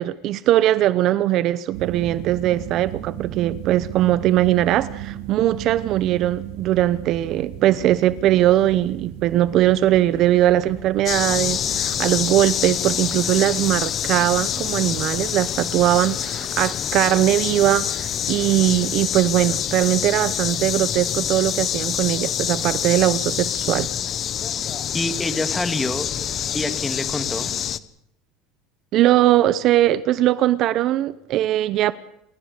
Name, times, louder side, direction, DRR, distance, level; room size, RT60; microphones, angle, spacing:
voice 1, 0.0-23.9 28.9-31.9, right 13 dB, 50° right, 0.8 m, -20 dB
sound 1, 1.7-12.4, right 11 dB, 80° right, 5.5 m, -36 dB
sound 2, 11.1-27.8, left 9 dB, 35° left, 1.0 m, -26 dB
voice 2, 24.9-26.1 26.5-27.5, left 2 dB, 10° left, 2.0 m, -26 dB
29.5 x 17.0 x 6.7 m
supercardioid pair, 140°, 0 cm